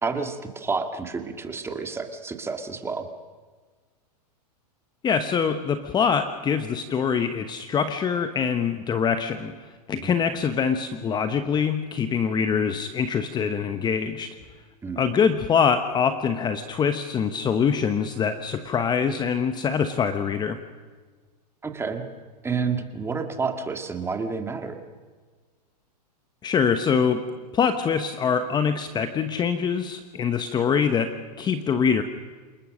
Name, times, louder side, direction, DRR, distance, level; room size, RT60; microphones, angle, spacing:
voice 1, 0.0-3.1 10.0-10.1 14.8-15.1 21.6-22.1 22.4-24.8, right 5 dB, 10° right, 6 dB, 2.1 m, -30 dB
voice 2, 5.0-14.4 15.0-20.6 26.4-27.2 27.5-32.0, left 6 dB, 20° left, 9 dB, 1.1 m, -24 dB
28.0 x 20.0 x 6.5 m, 1.4 s
hypercardioid pair, 130°, 21 cm